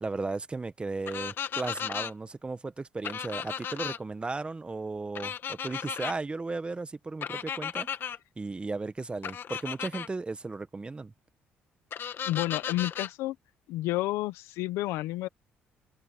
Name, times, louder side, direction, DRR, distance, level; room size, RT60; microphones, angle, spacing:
voice 1, 0.0-7.9 8.4-11.1, right 3 dB, 25° right, 1.4 m, -35 dB
sound 1, 1.1-2.1 3.0-4.0 5.1-6.1 7.2-8.2 9.2-10.1 11.9-13.1, left 8 dB, 55° left, 2.0 m, -35 dB
voice 2, 12.2-13.4 13.7-15.3, left 17 dB, 85° left, 1.0 m, -30 dB
supercardioid pair, 75°, 4 cm